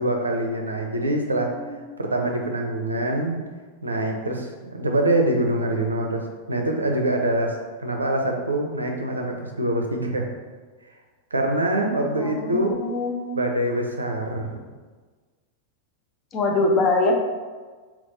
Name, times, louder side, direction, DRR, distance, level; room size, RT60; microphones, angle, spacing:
voice 1, 0.0-1.6 2.0-3.4 3.8-10.3 11.3-12.7 13.3-14.6, right 1 dB, 80° right, 2 dB, 0.5 m, -24 dB
voice 2, 1.5-1.8 12.2-13.5 16.3-17.1, left 2 dB, 30° left, 2 dB, 0.6 m, -24 dB
3.4 x 3.1 x 3.9 m, 1.4 s
figure-of-eight pair, 90°, 0 cm